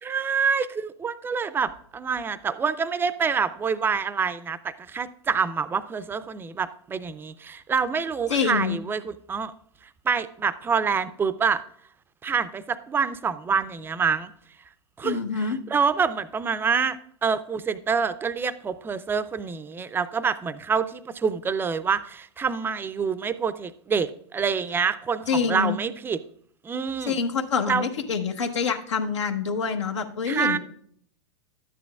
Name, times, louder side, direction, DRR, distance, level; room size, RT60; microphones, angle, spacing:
voice 1, 0.0-9.5 10.1-11.6 12.2-14.3 15.0-26.2 26.6-27.2 27.7-27.8 30.3-30.6, right 6 dB, 15° right, 14 dB, 0.5 m, -26 dB
voice 2, 8.3-8.8 15.0-15.6 25.3-25.8 27.1-30.6, left 6 dB, 80° left, 4 dB, 1.1 m, -26 dB
12.0 x 9.4 x 2.4 m, 0.63 s
hypercardioid pair, 105°, 15 cm